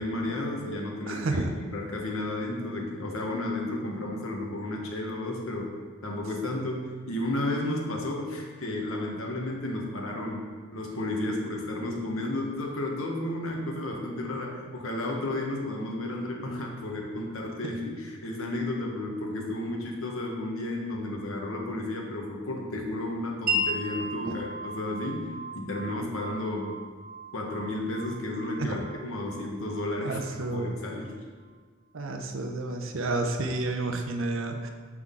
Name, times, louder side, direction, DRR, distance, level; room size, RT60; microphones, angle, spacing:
voice 1, 0.0-5.7 6.0-10.5 10.7-25.3 25.5-26.7 27.3-31.1, left 1 dB, 75° left, 0 dB, 1.1 m, -32 dB
voice 2, 1.1-1.5 24.3-24.4 28.6-28.7 30.0-30.8 31.9-34.7, right 2 dB, 65° right, 5 dB, 0.6 m, -30 dB
Wind chime, 23.5-31.1, equal, 40° right, 1.0 m, -36 dB
6.0 x 5.9 x 3.7 m, 1.5 s
head